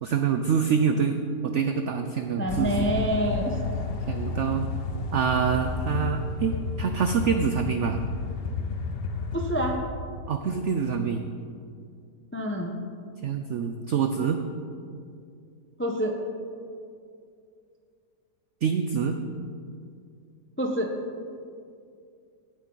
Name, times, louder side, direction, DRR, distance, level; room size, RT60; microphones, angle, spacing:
voice 1, 0.0-2.9 4.1-4.7 5.1-8.0 10.3-11.2 13.2-14.4 18.6-19.2, right 6 dB, 75° right, 6 dB, 0.6 m, -26 dB
voice 2, 2.4-3.6 9.3-9.8 12.3-12.8 15.8-16.1 20.6-20.9, equal, 15° left, 2 dB, 0.4 m, -27 dB
sound 1, 2.5-9.8, left 4 dB, 60° left, 0.6 m, -31 dB
17.0 x 8.2 x 4.0 m, 2.3 s
omnidirectional pair, 1.9 m